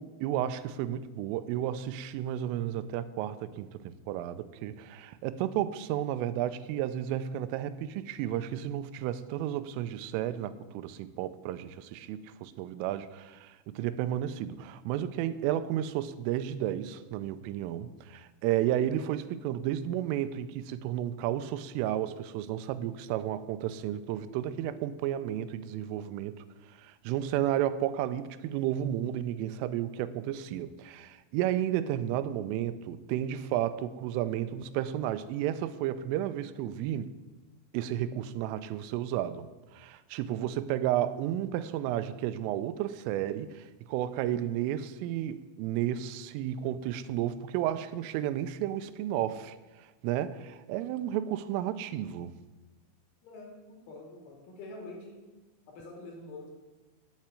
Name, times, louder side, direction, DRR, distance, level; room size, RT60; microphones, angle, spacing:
voice 1, 0.0-26.4 26.8-37.1 37.7-52.4, right 11 dB, 90° right, 3.2 m, -32 dB
voice 2, 53.2-55.2 55.7-56.5, left 2 dB, 75° left, 5.0 m, -46 dB
9.8 x 7.5 x 9.0 m
omnidirectional pair, 5.7 m